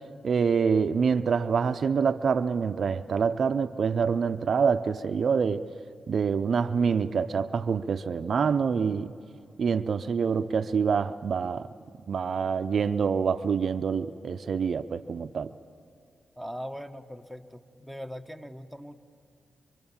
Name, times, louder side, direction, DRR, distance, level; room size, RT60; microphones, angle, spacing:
voice 1, 0.2-5.7 6.1-9.1 9.6-11.7 12.1-15.5, right 6 dB, 65° right, 11 dB, 0.6 m, -26 dB
voice 2, 16.4-19.0, equal, 5° left, 8 dB, 1.3 m, -40 dB
25.0 x 24.5 x 7.2 m, 2.3 s
supercardioid pair, 50°, 0 cm